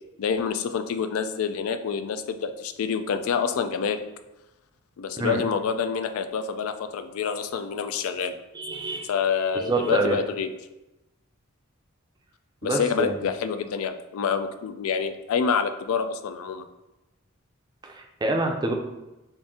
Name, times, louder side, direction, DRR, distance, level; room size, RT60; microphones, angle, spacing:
voice 1, 0.2-4.0 5.0-8.3 9.1-10.5 12.6-16.7, left 6 dB, 85° left, 9 dB, 0.3 m, -27 dB
voice 2, 8.5-9.1 9.5-10.2 12.6-13.2 17.8-18.7, right 2 dB, 20° right, 2 dB, 0.4 m, -26 dB
3.8 x 2.5 x 3.6 m, 0.99 s
head